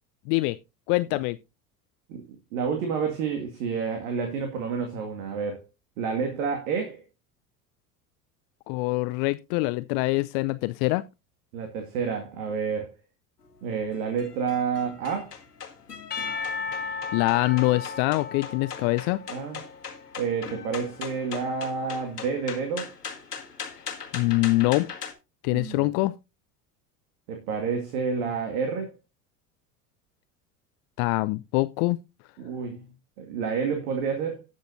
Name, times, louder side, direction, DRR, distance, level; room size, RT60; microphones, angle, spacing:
voice 1, 0.3-0.6 0.9-1.4 8.7-11.0 17.1-19.2 24.1-24.9 25.4-26.1 31.0-32.0, left 21 dB, 45° left, 0.5 m, -24 dB
voice 2, 2.5-5.6 6.0-7.0 11.5-12.9 13.6-15.3 19.3-19.6 20.2-22.9 25.5-25.9 27.3-28.9 32.4-32.8 33.2-34.5, right 6 dB, 60° right, 2.1 m, -29 dB
sound 1, 13.4-25.1, left 6 dB, 85° left, 1.5 m, -40 dB
Percussion / Church bell, 16.1-20.3, left 4 dB, 20° left, 1.3 m, -35 dB
18.0 x 6.5 x 2.6 m
figure-of-eight pair, 70°, 46 cm